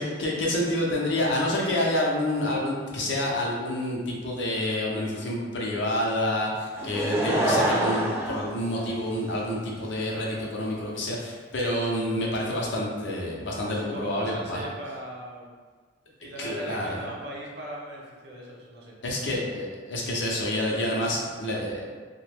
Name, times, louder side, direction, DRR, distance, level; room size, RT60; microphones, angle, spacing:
voice 1, 0.0-14.6 16.4-17.0 19.0-21.9, left 1 dB, 70° left, -3 dB, 0.6 m, -28 dB
Laughter / Crowd, 6.8-9.4 10.1-10.2, right 1 dB, 15° right, 0.4 m, -26 dB
voice 2, 13.7-15.5 16.2-18.9, right 1 dB, 60° right, -3 dB, 0.7 m, -39 dB
2.8 x 2.2 x 3.3 m, 1.5 s
head